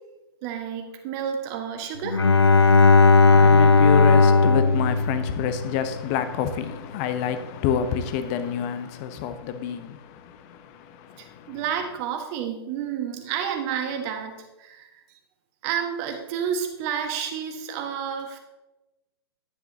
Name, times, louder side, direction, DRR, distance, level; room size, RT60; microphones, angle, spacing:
voice 1, 0.4-2.2 11.2-15.0 15.6-18.4, right 8 dB, 35° right, 1.5 m, -30 dB
Bowed string instrument, 2.1-5.9, left 4 dB, 85° left, 0.5 m, -16 dB
voice 2, 3.1-11.6, left 8 dB, 35° left, 0.9 m, -28 dB
11.0 x 9.2 x 2.9 m
figure-of-eight pair, 115°, 13 cm